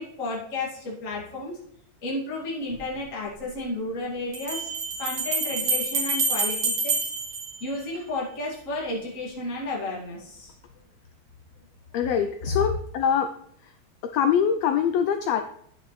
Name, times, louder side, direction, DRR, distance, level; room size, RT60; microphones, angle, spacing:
voice 1, 0.0-1.6 2.0-7.0 7.6-10.5 12.6-12.7, left 2 dB, 30° left, -4 dB, 2.4 m, -32 dB
sound 1, 2.7-2.8 4.3-8.3, right 3 dB, 50° right, 2.5 m, -28 dB
voice 2, 11.9-13.3 14.1-15.4, left 8 dB, 80° left, 8 dB, 1.5 m, -23 dB
9.8 x 7.4 x 3.2 m, 0.67 s
omnidirectional pair, 3.5 m